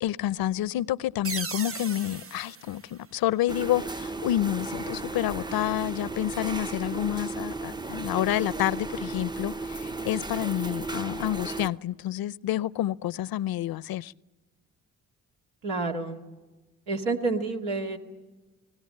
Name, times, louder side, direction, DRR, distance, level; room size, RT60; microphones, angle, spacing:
voice 1, 0.0-14.1, left 13 dB, 65° left, 0.6 m, -29 dB
sound 1, 1.2-3.8, right 5 dB, 35° right, 1.0 m, -38 dB
sound 2, 3.5-11.7, right 3 dB, 10° right, 0.6 m, -35 dB
voice 2, 15.6-16.2 16.9-18.0, right 3 dB, 90° right, 2.1 m, -29 dB
24.0 x 18.5 x 7.6 m
supercardioid pair, 55°, 38 cm